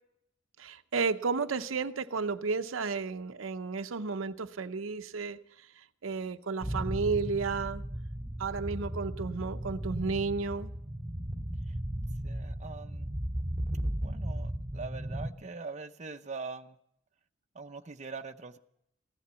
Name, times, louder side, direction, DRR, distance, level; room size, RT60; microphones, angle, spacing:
voice 1, 0.6-7.8 8.4-10.7, right 4 dB, 75° right, 0.6 m, -33 dB
sound 1, 6.6-15.3, right 1 dB, 15° right, 1.7 m, -36 dB
voice 2, 12.0-13.1 14.0-16.8 17.5-18.6, right 4 dB, 35° right, 0.7 m, -43 dB
16.0 x 10.5 x 8.1 m
head